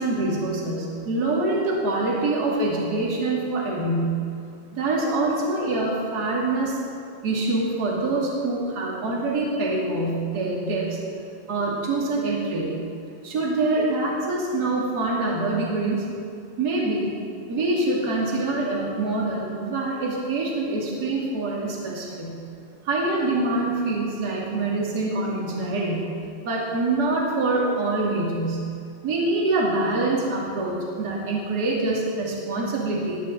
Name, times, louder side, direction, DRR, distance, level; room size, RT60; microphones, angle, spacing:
voice 1, 0.0-4.1 4.7-6.8 7.2-11.0 11.5-12.8 13.2-16.1 16.6-17.1 17.5-22.4 22.8-26.1 26.4-28.7 29.0-33.2, right 2 dB, 30° right, -4 dB, 2.7 m, -25 dB
20.5 x 6.9 x 7.6 m, 2.5 s
omnidirectional pair, 4.2 m